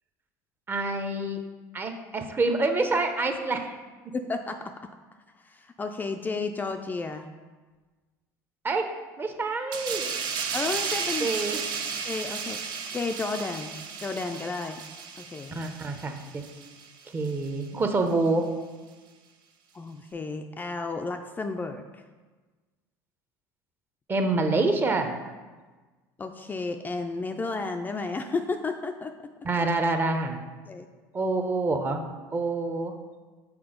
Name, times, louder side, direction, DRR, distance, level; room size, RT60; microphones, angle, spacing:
voice 1, 0.7-1.4 1.7-3.7 8.6-8.9 9.2-10.1 11.2-11.6 15.5-16.4 17.1-18.5 24.1-25.2 29.4-30.4 31.1-32.0 32.3-32.9, right 3 dB, 25° right, 5 dB, 0.7 m, -27 dB
voice 2, 4.1-4.6 5.4-7.3 10.5-11.3 12.0-12.6 12.9-14.8 15.2-15.6 19.7-21.8 26.2-29.1 30.7-30.9, left 3 dB, 20° left, 5 dB, 0.4 m, -32 dB
sound 1, 9.7-16.9 17.2-17.5, right 6 dB, 60° right, 0.7 m, -34 dB
6.0 x 3.8 x 5.0 m, 1.3 s
supercardioid pair, 100°, 8 cm